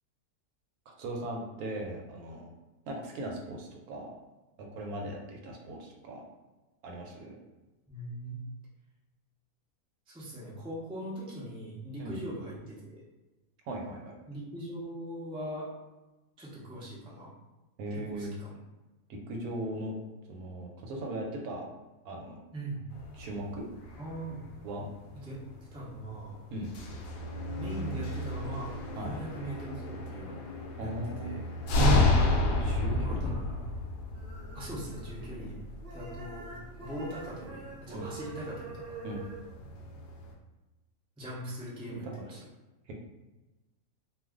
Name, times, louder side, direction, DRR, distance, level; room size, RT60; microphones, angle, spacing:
voice 1, 0.9-2.5 2.9-4.1 4.6-6.2 6.8-7.4 12.0-12.2 13.6-14.2 17.8-18.3 19.1-20.0 20.3-21.7 22.0-22.4 23.1-23.6 24.6-24.9 26.5-26.7 29.0-29.2 30.8-31.5 32.6-33.3 35.4-35.6 37.9-38.1 39.0-39.2 41.9-42.4 42.9-43.0, right 1 dB, 80° right, 0 dB, 1.1 m, -38 dB
voice 2, 7.9-8.4 10.1-13.0 14.3-15.7 16.4-17.3 18.1-18.5 22.5-22.8 24.0-24.4 25.2-25.4 25.7-26.4 27.6-30.4 30.8-30.9 31.2-31.4 32.9-33.5 34.5-35.6 35.9-36.5 36.8-39.0 41.2-42.4, right 1 dB, 10° right, -7 dB, 0.3 m, -40 dB
sound 1, 22.9-40.3, left 2 dB, 70° left, 0.9 m, -32 dB
sound 2, 34.1-35.5 35.8-39.4, right 3 dB, 55° right, 0.6 m, -45 dB
2.4 x 2.4 x 3.5 m, 1.1 s
omnidirectional pair, 1.6 m